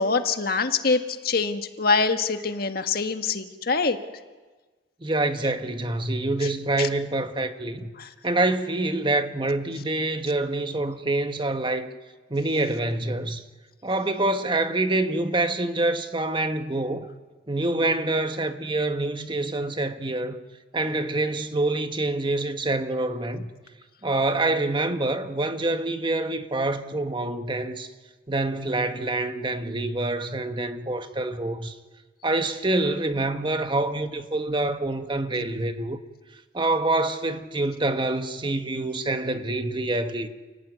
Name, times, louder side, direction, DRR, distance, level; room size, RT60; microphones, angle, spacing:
voice 1, 0.0-4.0 6.8-6.9 8.0-8.1, left 4 dB, 55° left, 1.7 m, -24 dB
voice 2, 5.0-7.9 8.2-11.9 12.3-13.4 13.8-17.1 17.5-20.4 20.7-23.5 24.0-27.9 28.3-31.7 32.2-36.0 36.5-40.3, right 2 dB, 25° right, 1.4 m, -26 dB
29.0 x 18.0 x 9.6 m
head